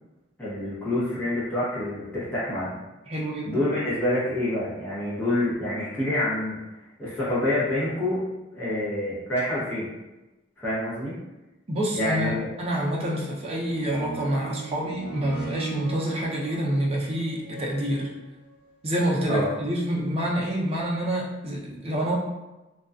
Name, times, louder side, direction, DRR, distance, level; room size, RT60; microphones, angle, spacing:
voice 1, 0.4-2.8 3.4-6.6 7.0-8.3 8.5-9.9 10.6-11.2 11.9-12.5 19.3-19.5, left 1 dB, 10° left, -11 dB, 0.8 m, -27 dB
voice 2, 3.1-3.6 11.7-18.1 18.8-22.2, equal, 30° right, -3 dB, 0.5 m, -27 dB
sound 1, 12.6-18.5 19.2-19.3, right 3 dB, 60° left, 1.0 m, -39 dB
2.5 x 2.2 x 2.3 m, 1.0 s
head